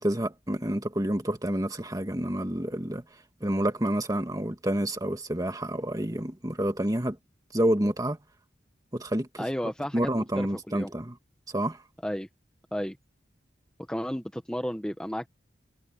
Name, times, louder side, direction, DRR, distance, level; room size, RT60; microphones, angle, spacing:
voice 1, 0.0-3.0 3.4-7.2 7.5-8.2 8.9-9.5 9.9-11.2 11.5-11.8, right 1 dB, 20° right, 1.9 m, -28 dB
voice 2, 9.4-10.9 12.0-12.3 12.7-13.0 13.9-15.3, equal, 5° left, 0.9 m, -33 dB
head